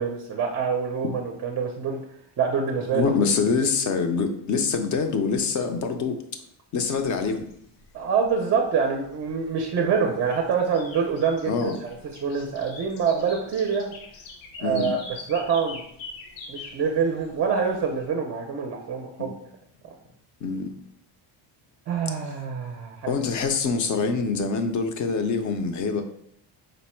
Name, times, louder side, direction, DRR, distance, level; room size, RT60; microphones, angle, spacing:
voice 1, 0.0-2.0 2.4-3.0 3.4-3.5 7.9-13.9 14.6-15.0 15.3-15.8 16.5-19.4 21.9-23.2, right 6 dB, 35° right, 2 dB, 0.4 m, -26 dB
voice 2, 2.9-6.2 6.7-7.5 11.4-11.8 14.6-14.9 19.2-19.3 20.4-20.7 23.1-26.0, left 5 dB, 40° left, 6 dB, 0.5 m, -25 dB
sound 1, 7.2-18.1, left 3 dB, 90° left, 0.9 m, -45 dB
5.1 x 2.0 x 4.3 m, 0.69 s
cardioid pair, 160°, 46 cm